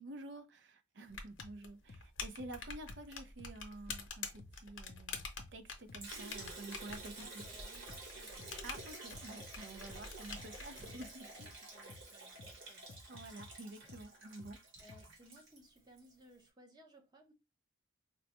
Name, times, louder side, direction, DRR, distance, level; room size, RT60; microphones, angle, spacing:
voice 1, 0.0-5.2 5.5-7.4 8.6-11.5 13.1-14.6, right 2 dB, 60° right, 0.5 m, -50 dB
sound 1, 1.1-11.1, left 5 dB, 75° left, 0.7 m, -47 dB
sound 2, 1.4-1.5 1.9-2.0 2.4-2.5 2.9-3.0 3.4-3.5 3.9-4.0 4.4-4.5 4.9-5.5 5.9-6.0 6.4-6.5 6.9-7.0 7.4-7.5 7.9-8.0 8.4-9.5 9.9-10.0 10.4-10.5 10.9-11.0 11.4-11.5 11.9-12.0 12.4-12.5 12.9-13.5 13.9-14.0 14.4-14.5 14.9-15.0, left 3 dB, 50° left, 0.4 m, -54 dB
Liquid, 6.0-16.1, right 2 dB, 75° right, 1.1 m, -51 dB
voice 2, 7.2-8.5 11.4-12.9 14.8-17.3, right 1 dB, 20° right, 0.6 m, -61 dB
4.4 x 2.1 x 2.9 m
head